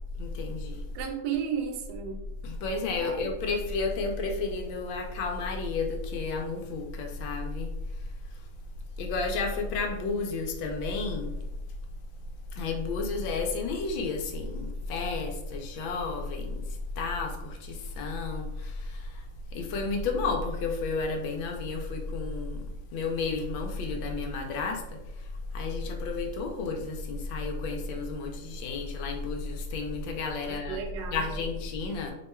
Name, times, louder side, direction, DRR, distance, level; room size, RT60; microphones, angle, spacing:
voice 1, 0.2-0.8 2.4-7.7 9.0-11.3 12.5-16.6 17.0-19.2 19.5-22.6 22.9-25.0 25.5-30.8 31.1-32.1, left 3 dB, 85° left, 2 dB, 1.4 m, -32 dB
voice 2, 0.9-2.2 3.0-3.4 30.5-31.4, right 7 dB, 75° right, 3 dB, 1.2 m, -34 dB
3.5 x 2.3 x 4.2 m, 0.91 s
omnidirectional pair, 2.1 m